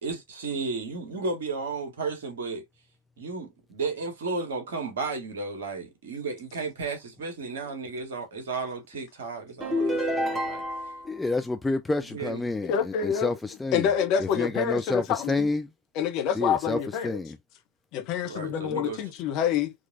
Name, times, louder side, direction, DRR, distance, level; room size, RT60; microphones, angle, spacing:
voice 1, 0.0-2.6 3.2-10.7 12.1-12.5 18.2-19.0, right 4 dB, 60° right, 1.6 m, -33 dB
sound 1, 9.6-11.1, equal, 10° right, 1.3 m, -28 dB
voice 2, 11.0-13.9 14.2-15.7 16.4-16.8 17.0-17.4, left 2 dB, 10° left, 0.4 m, -29 dB
voice 3, 12.6-13.3 13.7-15.5 15.9-17.2 17.9-19.7, left 8 dB, 40° left, 0.9 m, -27 dB
3.8 x 3.0 x 2.7 m
figure-of-eight pair, 90°, 0 cm